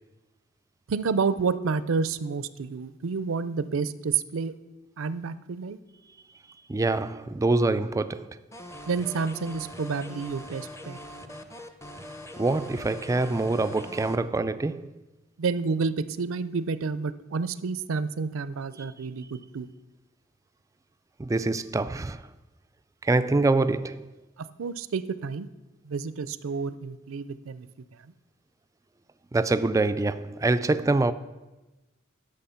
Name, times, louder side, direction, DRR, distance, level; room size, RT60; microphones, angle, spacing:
voice 1, 0.9-4.5 5.0-5.8 8.9-11.0 15.4-19.7 24.6-25.5 25.9-27.7, right 5 dB, 80° right, 0.5 m, -29 dB
voice 2, 6.7-8.4 12.4-14.9 18.7-18.9 21.2-22.2 23.0-24.1 29.3-31.1, right 2 dB, 15° right, 0.3 m, -25 dB
sound 1, 8.5-14.2, left 1 dB, 15° left, 0.6 m, -42 dB
11.5 x 6.6 x 5.7 m
head